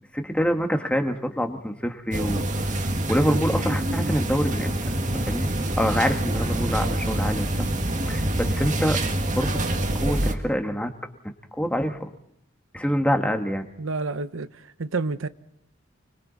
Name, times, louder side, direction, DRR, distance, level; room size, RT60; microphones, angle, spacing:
voice 1, 0.1-5.5 5.8-7.7 8.1-9.0 9.3-9.6 9.9-10.9 11.2-12.1 12.7-13.6, equal, 5° left, 1.6 m, -26 dB
sound 1, 2.1-10.3, right 1 dB, 40° right, 2.0 m, -26 dB
voice 2, 13.8-15.3, right 3 dB, 90° right, 0.8 m, -29 dB
30.0 x 22.0 x 4.1 m
head